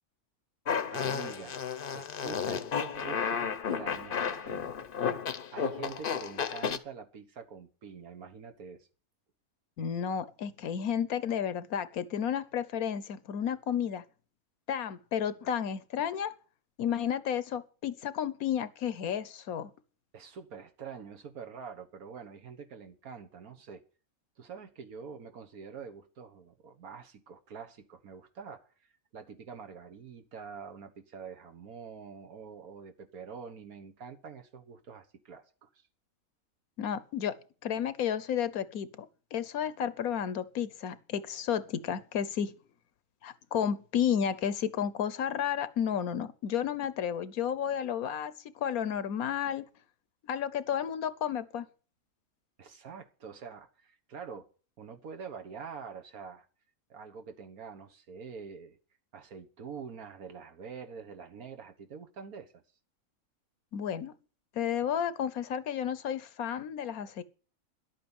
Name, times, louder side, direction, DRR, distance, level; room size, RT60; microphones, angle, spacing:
Fart, 0.7-6.8, left 7 dB, 45° left, 0.8 m, -33 dB
voice 1, 0.9-1.6 1.9-4.9 5.5-8.9 20.1-23.8 24.4-28.7 29.1-35.8 52.6-54.5 54.8-56.5 56.9-58.8 59.1-62.6, right 6 dB, 80° right, 1.8 m, -46 dB
voice 2, 9.8-14.0 14.7-16.3 16.8-19.7 36.8-37.4 37.6-39.1 39.3-42.5 43.2-49.7 50.2-51.7 63.7-64.1 64.5-67.2, left 8 dB, 80° left, 1.3 m, -32 dB
11.5 x 8.5 x 7.2 m
omnidirectional pair, 1.5 m